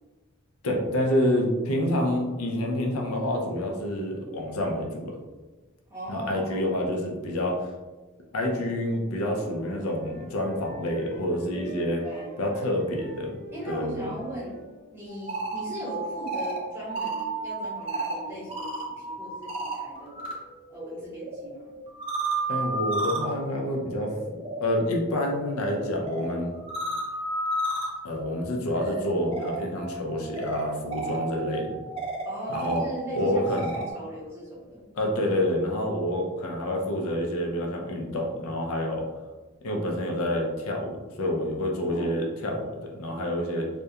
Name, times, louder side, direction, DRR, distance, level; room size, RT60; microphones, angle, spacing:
voice 1, 0.6-5.2 6.1-7.7 8.3-12.0 12.4-13.4 13.6-14.1 22.5-26.5 28.0-31.8 32.5-32.8 33.2-33.8 34.9-39.0 39.6-43.7, left 1 dB, 75° left, 0 dB, 0.5 m, -28 dB
voice 2, 5.9-6.7 12.0-12.4 13.5-14.6 14.9-20.2 20.7-21.7 32.2-34.8 41.9-42.1, right 1 dB, 10° right, -8 dB, 0.9 m, -38 dB
Wind instrument woodwind instrument, 9.3-14.8, right 1 dB, 30° left, 0.9 m, -44 dB
sound 1, 15.1-20.3 20.6-33.9, right 2 dB, 25° right, 0.4 m, -33 dB
2.3 x 2.1 x 2.7 m, 1.2 s
head